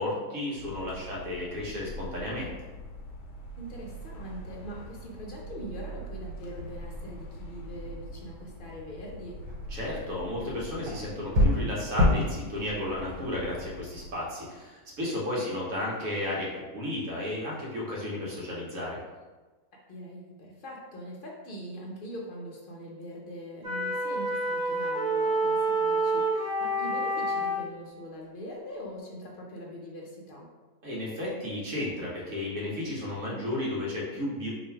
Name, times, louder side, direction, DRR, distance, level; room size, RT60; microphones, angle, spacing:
voice 1, 0.0-2.5 9.7-19.0 30.8-34.5, left 1 dB, 65° right, -5 dB, 1.4 m, -33 dB
sound 1, 0.6-14.1, equal, 90° left, 1.1 m, -43 dB
voice 2, 3.6-9.4 15.3-15.5 19.9-30.5, equal, 60° left, -2 dB, 0.5 m, -42 dB
sound 2, 9.4-14.3, left 1 dB, 85° right, 1.3 m, -29 dB
sound 3, 23.6-27.6, right 2 dB, 40° right, 0.9 m, -28 dB
3.0 x 2.5 x 4.3 m, 1.2 s
omnidirectional pair, 1.6 m